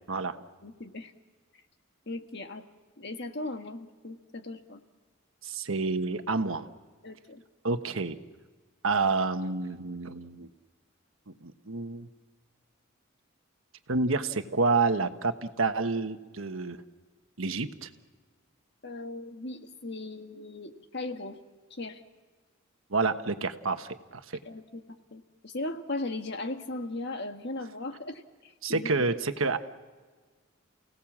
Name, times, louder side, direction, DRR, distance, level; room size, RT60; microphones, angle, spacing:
voice 1, 0.1-0.4 5.4-6.7 7.6-8.1 8.8-10.5 11.4-12.1 13.9-16.8 17.4-17.9 22.9-24.2 28.6-29.6, right 3 dB, 75° right, 8 dB, 1.3 m, -28 dB
voice 2, 0.6-1.1 2.1-2.6 3.0-4.8 7.0-7.4 18.8-21.4 21.7-22.0 24.4-24.8 25.1-29.1, left 2 dB, 55° left, 6 dB, 1.6 m, -38 dB
29.5 x 17.5 x 7.4 m, 1.4 s
head